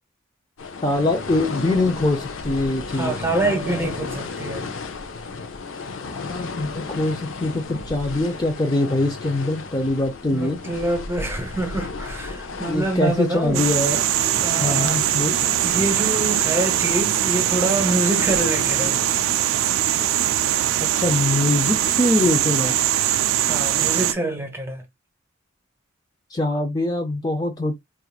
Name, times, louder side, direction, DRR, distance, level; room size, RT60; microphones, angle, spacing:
sound 1, 0.6-19.3, left 4 dB, 75° left, 0.7 m, -34 dB
voice 1, 0.8-3.2 3.5-3.9 6.0-10.6 12.6-14.0 14.6-15.3 21.0-22.8 26.3-27.8, left 2 dB, 20° left, 0.5 m, -23 dB
voice 2, 2.9-4.7 10.3-13.7 14.4-15.0 15.6-19.0 23.4-24.8, right 2 dB, 10° right, 0.9 m, -26 dB
sound 2, 13.5-24.1, right 12 dB, 80° right, 0.3 m, -21 dB
4.4 x 2.5 x 2.3 m
head